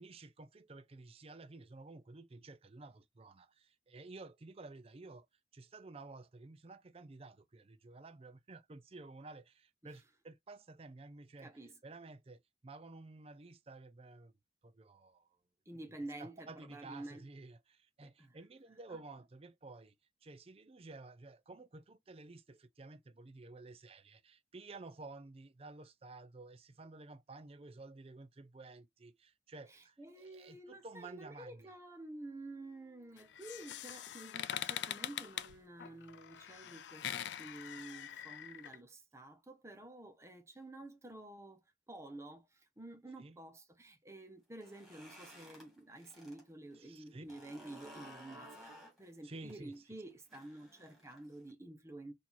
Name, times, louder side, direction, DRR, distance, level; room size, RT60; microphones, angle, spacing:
voice 1, 0.0-5.3 5.5-11.5 11.8-14.3 14.6-15.4 16.2-20.0 20.2-31.8 43.2-43.4 46.8-47.3 49.2-49.8, right 3 dB, 30° right, 0.5 m, -52 dB
voice 2, 11.4-11.8 15.7-17.3 18.0-18.4 18.9-19.0 29.7-41.6 41.9-52.1, right 1 dB, 15° right, 1.0 m, -50 dB
sound 1, 30.6-36.6, equal, 20° left, 2.5 m, -75 dB
sound 2, 33.2-38.8, left 11 dB, 70° left, 0.3 m, -43 dB
sound 3, 44.5-46.4 46.7-51.5, equal, ahead, 2.1 m, -56 dB
4.4 x 2.8 x 4.1 m
head